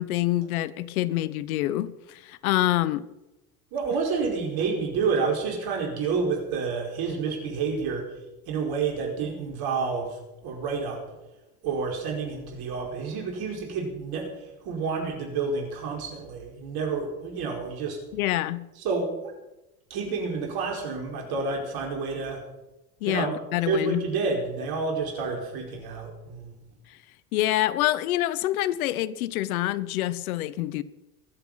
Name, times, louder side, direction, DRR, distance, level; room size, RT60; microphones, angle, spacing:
voice 1, 0.0-3.1 18.1-18.6 23.0-24.0 27.3-30.8, left 15 dB, 80° left, 0.9 m, -26 dB
voice 2, 3.7-8.0 8.5-10.2 10.4-11.0 11.6-14.3 14.6-18.0 18.8-19.1 19.9-22.4 23.0-23.3 23.6-26.5, right 4 dB, 55° right, 5.0 m, -29 dB
22.0 x 8.2 x 5.7 m
hypercardioid pair, 85°, 43 cm